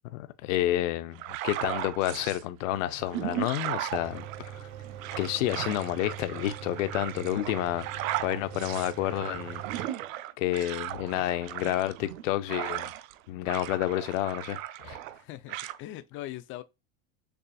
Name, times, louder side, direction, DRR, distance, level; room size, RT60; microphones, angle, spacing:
voice 1, 0.1-4.7 5.2-9.6 10.4-12.9 13.3-15.0, left 14 dB, 80° left, 0.6 m, -30 dB
sound 1, 1.2-2.4 2.9-13.2 13.5-15.2 15.5-15.8, right 14 dB, 85° right, 0.6 m, -37 dB
Mechanical fan, 3.9-9.9, right 10 dB, 50° right, 1.2 m, -43 dB
voice 2, 15.1-16.6, left 14 dB, 35° left, 0.4 m, -41 dB
6.8 x 2.4 x 2.3 m
supercardioid pair, 125°, 39 cm